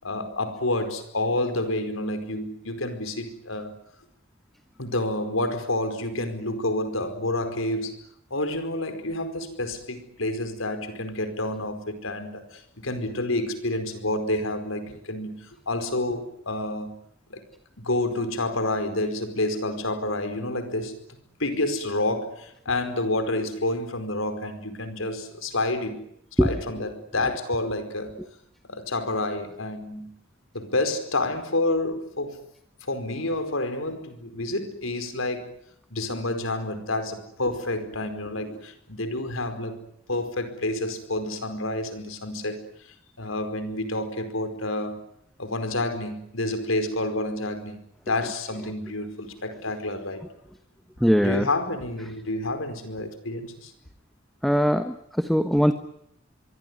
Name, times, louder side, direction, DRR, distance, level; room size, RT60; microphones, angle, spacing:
voice 1, 0.0-3.7 4.8-8.0 8.3-16.9 17.3-17.4 17.8-21.0 21.4-26.1 26.4-28.2 28.7-30.1 30.5-32.4 32.8-35.5 35.9-39.8 40.1-42.7 43.2-45.0 45.4-47.8 48.1-50.3 51.2-53.7, left 2 dB, 90° left, 9 dB, 4.9 m, -29 dB
voice 2, 51.0-51.5 54.4-55.7, equal, ahead, 9 dB, 1.2 m, -21 dB
25.5 x 23.5 x 9.8 m, 0.69 s
head